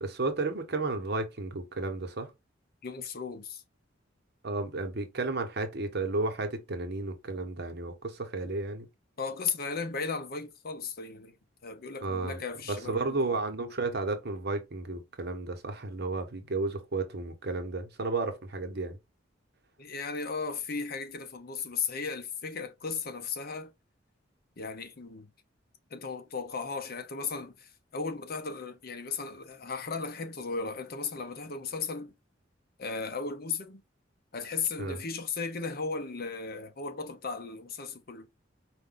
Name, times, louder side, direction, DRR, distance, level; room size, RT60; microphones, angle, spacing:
voice 1, 0.0-2.3 4.4-8.9 12.0-12.4 12.7-19.0 34.8-35.0, right 3 dB, 55° right, 1.1 m, -33 dB
voice 2, 2.8-3.6 9.2-11.4 11.6-13.2 19.8-23.7 24.6-25.3 25.9-32.1 32.8-33.8 34.3-38.3, left 5 dB, 50° left, 0.8 m, -36 dB
5.0 x 2.6 x 3.8 m
head